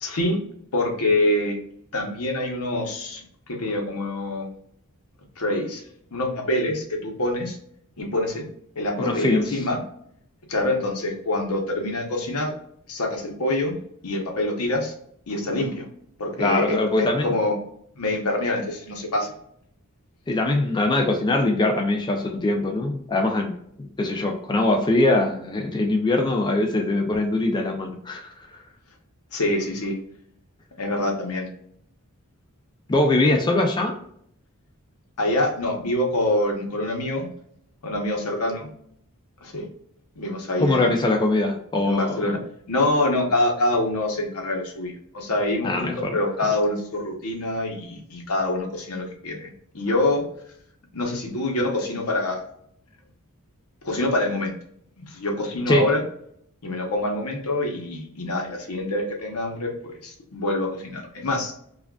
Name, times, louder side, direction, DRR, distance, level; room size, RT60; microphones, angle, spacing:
voice 1, 0.0-0.4 0.7-1.6 1.9-4.5 5.4-5.8 6.1-7.6 8.0-8.4 8.8-9.8 10.5-12.5 12.9-13.8 14.0-14.9 15.3-15.8 16.2-17.6 18.0-19.3 29.3-30.0 30.8-31.5 35.2-37.3 37.8-38.7 39.4-39.7 40.2-40.9 41.9-42.4 42.7-50.2 50.9-52.4 53.8-54.5 55.0-56.0 56.6-61.5, left 1 dB, 75° left, 2 dB, 0.9 m, -25 dB
voice 2, 9.0-9.6 16.4-17.3 20.3-23.5 23.8-28.6 32.9-34.0 40.6-42.4 45.6-46.2 55.7-55.9, left 2 dB, 20° left, 2 dB, 0.4 m, -22 dB
4.7 x 2.4 x 2.3 m, 0.69 s
head